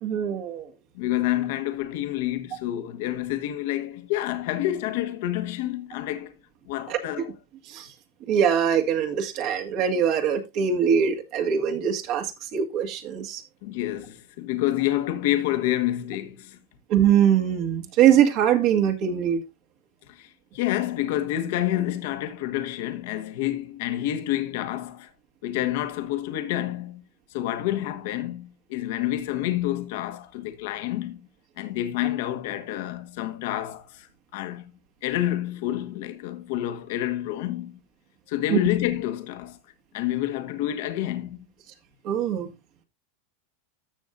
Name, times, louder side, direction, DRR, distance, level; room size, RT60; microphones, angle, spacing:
voice 1, 0.0-0.7 6.9-7.0 7.7-7.9 8.3-13.4 16.9-19.4 38.5-38.6 42.0-42.5, right 8 dB, 50° right, 1.9 m, -22 dB
voice 2, 0.9-6.3 6.7-7.3 13.6-16.6 20.1-25.1 25.4-27.0 27.3-31.3 31.6-34.1 34.3-34.7 35.0-37.8 38.3-39.6 39.9-41.4, left 13 dB, 65° left, 1.5 m, -28 dB
13.5 x 6.4 x 2.6 m
supercardioid pair, 125°, 0 cm